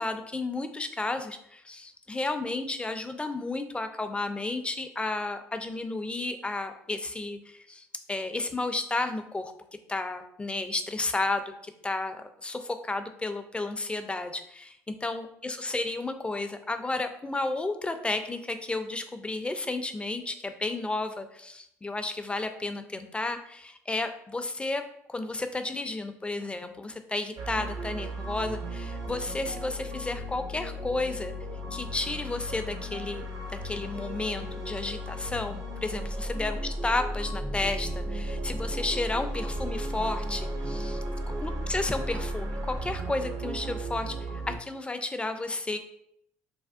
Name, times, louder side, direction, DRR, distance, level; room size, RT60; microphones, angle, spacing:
voice 1, 0.0-9.5 9.9-24.8 25.1-31.3 31.7-41.0 41.4-45.8, left 2 dB, 15° left, 8 dB, 0.3 m, -32 dB
sound 1, 27.4-44.6, equal, 55° right, 0.5 m, -34 dB
3.3 x 2.2 x 2.4 m, 0.74 s
supercardioid pair, 65°, 7 cm